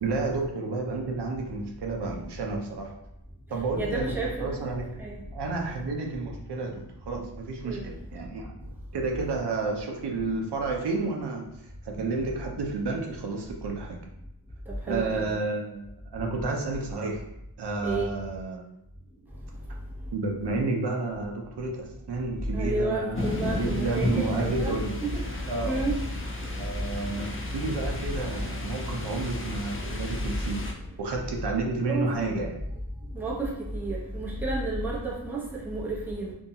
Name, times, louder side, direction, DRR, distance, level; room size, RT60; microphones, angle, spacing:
voice 1, 0.0-2.9 3.5-4.9 5.3-14.0 14.9-15.8 16.1-17.3 17.6-18.7 20.1-25.0 25.5-25.8 26.6-30.7 31.0-32.6, right 3 dB, 85° right, 1 dB, 0.5 m, -31 dB
voice 2, 3.8-5.2 7.6-7.8 14.9-15.2 17.8-18.1 22.5-24.7 25.0-25.2 25.6-26.0 31.8-32.1 33.1-36.3, right 2 dB, 5° right, -5 dB, 0.7 m, -31 dB
sound 1, 23.1-30.7, left 2 dB, 35° left, 0.4 m, -33 dB
2.6 x 2.3 x 2.7 m, 0.81 s
wide cardioid pair, 95°, 39 cm